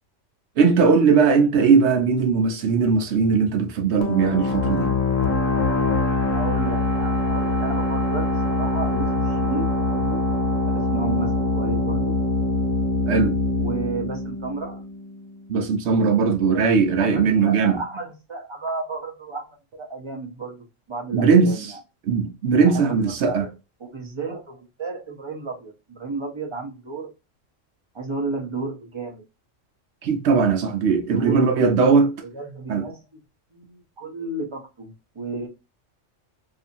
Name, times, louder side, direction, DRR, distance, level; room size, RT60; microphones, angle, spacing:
voice 1, 0.6-4.9 13.1-13.4 15.5-17.8 21.1-21.5 22.1-23.5 30.0-32.1 32.7-32.8, right 5 dB, 65° right, 0.8 m, -19 dB
sound 1, 4.0-15.4, left 2 dB, 85° left, 1.1 m, -23 dB
voice 2, 6.3-10.2 10.6-12.1 13.6-14.8 16.9-21.7 22.5-23.5 23.8-27.1 27.9-29.2 31.1-31.5 32.2-33.0 33.5-35.5, right 3 dB, 30° right, 0.6 m, -33 dB
2.7 x 2.4 x 2.5 m
omnidirectional pair, 1.3 m